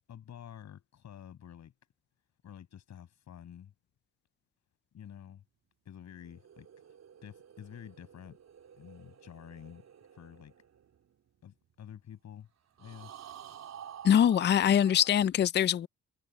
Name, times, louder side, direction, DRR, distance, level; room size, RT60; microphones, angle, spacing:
voice 1, 0.1-1.7 2.4-3.7 4.9-5.4 5.8-6.7 7.2-8.4 8.8-9.8 10.1-10.5 11.4-12.5 12.8-13.2, left 9 dB, 65° left, 7.3 m, -49 dB
sound 1, 6.1-11.7 12.8-15.1, right 9 dB, 60° right, 3.5 m, -51 dB
voice 2, 14.0-15.9, left 9 dB, 35° left, 0.4 m, -23 dB
cardioid pair, 90°, 30 cm